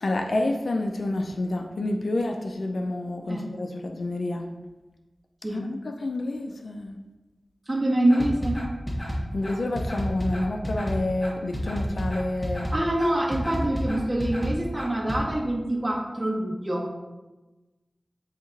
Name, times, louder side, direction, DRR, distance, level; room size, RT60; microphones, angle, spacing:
voice 1, 0.0-4.5 5.5-7.0 9.3-12.7, left 2 dB, 80° left, 3 dB, 0.5 m, -29 dB
voice 2, 7.7-8.6 12.7-16.9, right 1 dB, 30° right, -3 dB, 1.3 m, -25 dB
sound 1, 8.1-15.2, equal, 25° left, 1.6 m, -30 dB
9.0 x 3.0 x 4.0 m, 1.1 s
wide cardioid pair, 60°, 0 cm